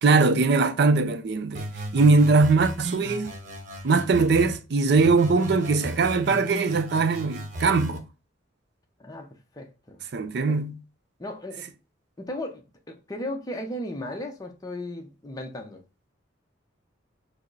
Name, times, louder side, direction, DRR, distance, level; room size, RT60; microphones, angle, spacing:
voice 1, 0.0-1.7 1.9-3.3 3.8-8.0 10.1-10.8, right 3 dB, 60° right, 0.4 m, -21 dB
sound 1, 1.5-4.6 5.0-8.0, right 1 dB, 40° right, 0.8 m, -36 dB
voice 2, 9.6-10.0 10.5-10.6 11.2-11.7 12.2-15.8, left 1 dB, 20° left, 0.6 m, -36 dB
4.7 x 2.0 x 4.6 m
head